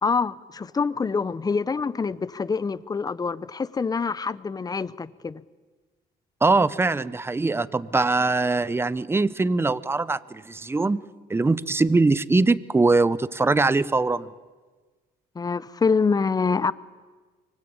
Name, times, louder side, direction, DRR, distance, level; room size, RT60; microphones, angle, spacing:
voice 1, 0.0-5.4 15.3-16.7, left 5 dB, 20° left, 0.8 m, -25 dB
voice 2, 6.4-11.0 11.3-14.3, right 3 dB, 15° right, 0.8 m, -22 dB
25.0 x 24.0 x 8.8 m
cardioid pair, 110°, 17 cm